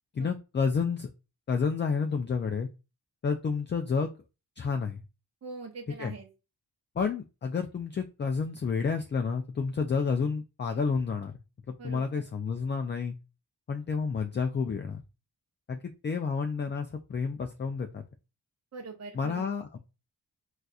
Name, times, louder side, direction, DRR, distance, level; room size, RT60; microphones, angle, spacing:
voice 1, 0.1-1.1 1.5-2.7 3.2-4.1 4.6-5.0 6.0-6.1 7.0-11.3 11.8-13.1 13.7-15.0 15.7-15.8 16.0-17.9 19.1-19.8, left 5 dB, 30° left, 5 dB, 0.3 m, -30 dB
voice 2, 5.4-6.3 11.8-12.2 18.7-19.5, right 4 dB, 40° right, 0 dB, 0.7 m, -42 dB
4.1 x 2.4 x 2.3 m, 0.29 s
cardioid pair, 60°, 42 cm